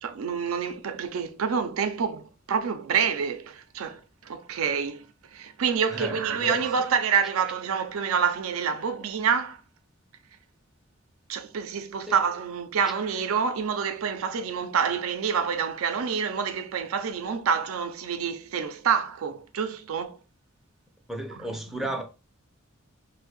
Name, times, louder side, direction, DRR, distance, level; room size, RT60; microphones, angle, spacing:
voice 1, 0.0-5.1 5.3-9.6 11.3-20.2 21.4-21.9, right 6 dB, 85° right, 0.4 m, -27 dB
voice 2, 5.9-6.6 12.1-12.2 21.1-22.0, right 1 dB, ahead, 0.4 m, -33 dB
2.6 x 2.1 x 4.0 m
head